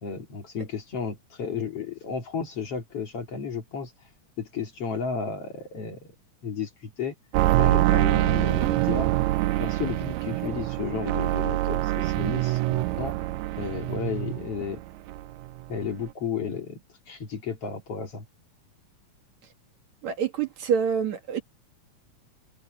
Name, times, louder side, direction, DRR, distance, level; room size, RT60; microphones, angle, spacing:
voice 1, 0.0-3.9 4.4-6.1 6.4-7.1 7.6-9.1 9.5-13.1 13.6-14.8 15.7-18.2, left 6 dB, 50° left, 3.5 m, -33 dB
sound 1, 7.3-14.8 15.1-15.8 16.0-16.1, right 16 dB, 80° right, 1.7 m, -25 dB
voice 2, 20.0-21.4, right 7 dB, 60° right, 2.8 m, -26 dB
omnidirectional pair, 3.7 m